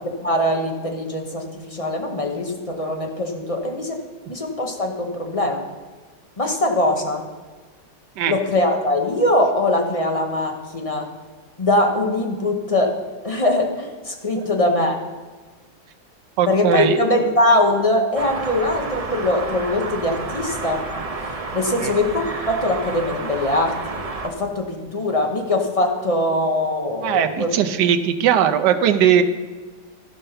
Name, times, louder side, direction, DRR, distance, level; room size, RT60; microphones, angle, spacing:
voice 1, 0.2-4.0 4.3-5.6 6.4-7.2 8.3-11.1 11.6-13.0 13.2-15.0 16.5-20.9 21.2-27.5, left 1 dB, 30° left, 2 dB, 0.7 m, -22 dB
voice 2, 16.4-17.0 21.8-21.9 27.0-29.2, right 9 dB, 80° right, 8 dB, 1.3 m, -18 dB
sound 1, 18.1-24.3, right 3 dB, 55° right, 0.4 m, -30 dB
13.5 x 5.4 x 5.6 m, 1.4 s
omnidirectional pair, 1.8 m